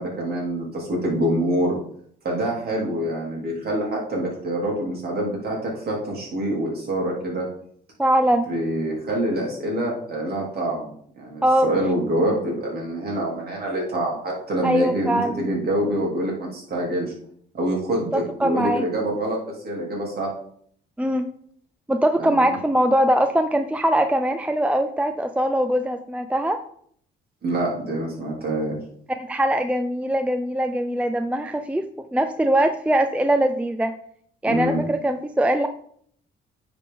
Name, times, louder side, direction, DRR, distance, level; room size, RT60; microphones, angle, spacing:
voice 1, 0.0-1.7 2.2-7.5 8.5-17.1 17.5-19.4 19.6-20.3 22.2-22.6 27.4-28.8 34.5-34.8, right 1 dB, 50° right, -2 dB, 3.1 m, -26 dB
voice 2, 8.0-8.5 11.4-11.7 14.6-15.4 18.1-18.9 21.0-21.3 21.9-26.6 29.2-33.9 34.4-35.7, right 1 dB, 5° right, 8 dB, 0.4 m, -21 dB
9.4 x 4.2 x 3.8 m, 0.63 s
cardioid pair, 90°, 20 cm